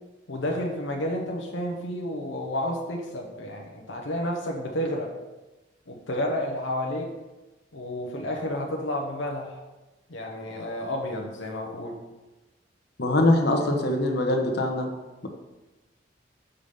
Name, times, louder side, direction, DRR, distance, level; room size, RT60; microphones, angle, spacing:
voice 1, 0.3-5.1 5.9-7.1 7.7-9.6 10.1-12.0, left 1 dB, 80° left, 0 dB, 0.9 m, -31 dB
voice 2, 13.0-14.9, left 1 dB, 60° left, 2 dB, 1.1 m, -22 dB
7.0 x 5.1 x 5.2 m, 1.1 s
head